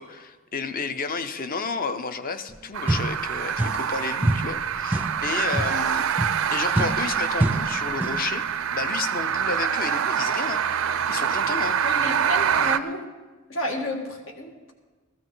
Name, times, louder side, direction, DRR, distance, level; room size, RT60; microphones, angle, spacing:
voice 1, 0.0-6.1 6.5-10.6 11.1-11.8, left 4 dB, 45° left, 10 dB, 0.7 m, -31 dB
sound 1, 2.5-2.6 2.9-4.0 4.2-8.4, right 2 dB, 10° right, 0.5 m, -28 dB
sound 2, 2.7-12.8, right 8 dB, 80° right, 0.5 m, -25 dB
voice 2, 11.8-13.0 13.5-14.7, left 1 dB, 80° left, 2 dB, 1.9 m, -31 dB
15.5 x 13.5 x 3.9 m, 1.3 s
head